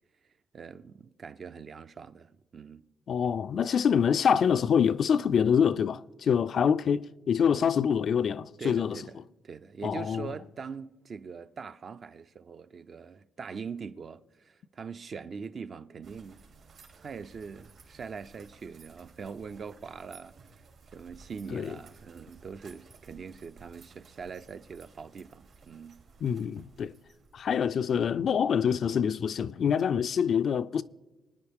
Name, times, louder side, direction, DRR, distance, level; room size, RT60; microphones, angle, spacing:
voice 1, 0.5-2.8 8.6-9.2 9.4-16.4 17.0-20.3 20.9-26.0, right 5 dB, 45° right, 0.5 m, -42 dB
voice 2, 3.1-9.0 9.8-10.3 21.5-21.7 26.2-26.9 27.3-30.8, left 7 dB, 55° left, 0.4 m, -26 dB
sound 1, 16.0-27.6, right 4 dB, 70° right, 2.7 m, -56 dB
25.0 x 9.6 x 3.5 m
cardioid pair, 90°, 0 cm